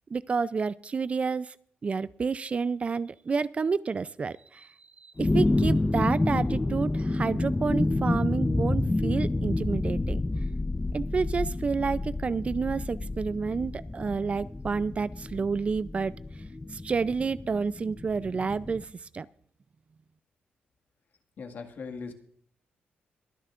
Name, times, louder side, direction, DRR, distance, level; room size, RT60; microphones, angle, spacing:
voice 1, 0.1-1.6 1.8-4.7 5.0-10.2 10.9-16.1 16.7-19.3, right 5 dB, 35° right, 17 dB, 0.4 m, -29 dB
sound 1, 5.2-18.8, left 2 dB, 15° left, 0.7 m, -29 dB
voice 2, 21.4-22.1, left 5 dB, 60° left, 5 dB, 1.9 m, -39 dB
23.0 x 10.0 x 2.5 m, 0.62 s
cardioid pair, 110°, 4 cm